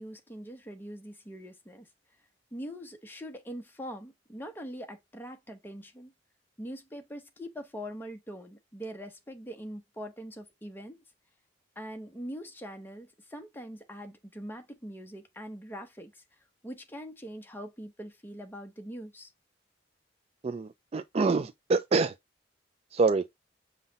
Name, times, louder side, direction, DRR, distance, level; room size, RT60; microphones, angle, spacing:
voice 1, 0.0-1.9 2.5-6.1 6.6-11.0 11.8-16.2 16.6-19.3, equal, 10° left, 0.9 m, -42 dB
voice 2, 20.4-22.1 22.9-23.3, right 4 dB, 35° right, 0.3 m, -26 dB
5.6 x 2.3 x 3.9 m
head